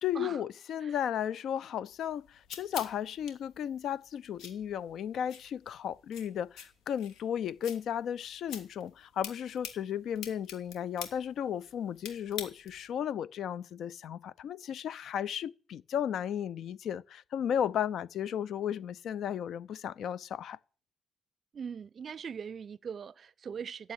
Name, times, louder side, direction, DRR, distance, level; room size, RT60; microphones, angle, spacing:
voice 1, 0.0-20.6, left 9 dB, 70° left, 0.6 m, -34 dB
sound 1, 1.9-12.9, left 7 dB, 85° left, 2.8 m, -48 dB
voice 2, 21.5-23.9, right 7 dB, 50° right, 0.6 m, -41 dB
14.5 x 7.7 x 9.9 m
cardioid pair, 90°, 0 cm